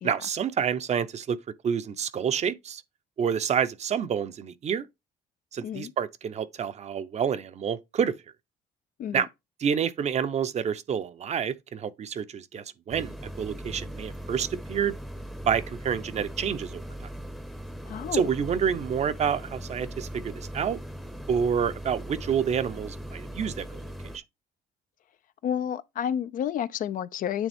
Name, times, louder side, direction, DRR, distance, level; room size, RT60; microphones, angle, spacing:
voice 1, 0.0-1.4 1.6-2.8 3.2-4.9 5.5-8.1 9.1-9.3 9.6-15.0 15.5-16.8 18.1-20.8 21.3-23.8, right 7 dB, 40° right, 0.6 m, -28 dB
sound 1, 12.9-24.2, right 1 dB, ahead, 0.7 m, -39 dB
voice 2, 17.9-18.3 25.4-27.5, left 9 dB, 55° left, 0.4 m, -30 dB
9.0 x 3.5 x 3.4 m
cardioid pair, 110°, 17 cm